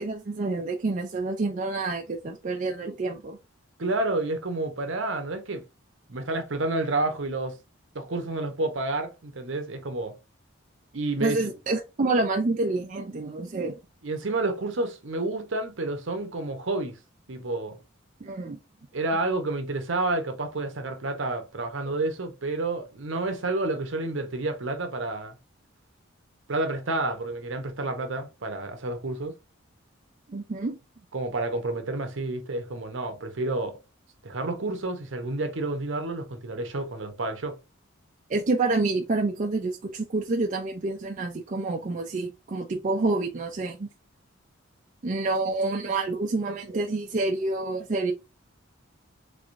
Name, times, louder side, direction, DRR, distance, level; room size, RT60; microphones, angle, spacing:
voice 1, 0.0-3.4 11.2-13.8 18.2-18.6 30.3-30.8 38.3-43.9 45.0-48.1, right 3 dB, 40° right, 0.4 m, -28 dB
voice 2, 3.8-5.6 6.1-7.6 7.9-10.1 10.9-11.4 14.0-17.0 17.3-17.8 18.9-25.4 26.5-29.3 31.1-33.8 34.2-37.6, right 2 dB, 65° right, 0.8 m, -29 dB
3.4 x 3.3 x 2.5 m
head